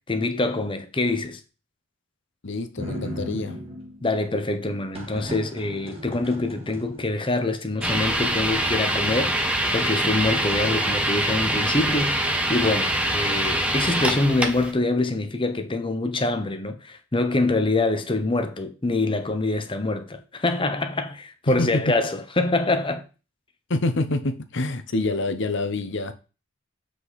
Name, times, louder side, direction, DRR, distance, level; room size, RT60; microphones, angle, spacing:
voice 1, 0.1-1.4 4.0-9.4 9.7-23.0, left 2 dB, 25° left, 0.9 m, -25 dB
voice 2, 2.4-3.6 21.5-21.7 23.7-26.1, left 2 dB, 60° left, 0.9 m, -26 dB
sound 1, 2.8-4.1 4.9-7.3 7.7-8.9 9.4-9.5 9.8-10.9 11.2-11.6 12.0-12.5, equal, 30° right, 1.7 m, -38 dB
sound 2, 7.8-14.7, right 1 dB, 5° right, 0.8 m, -24 dB
7.6 x 5.0 x 4.2 m
head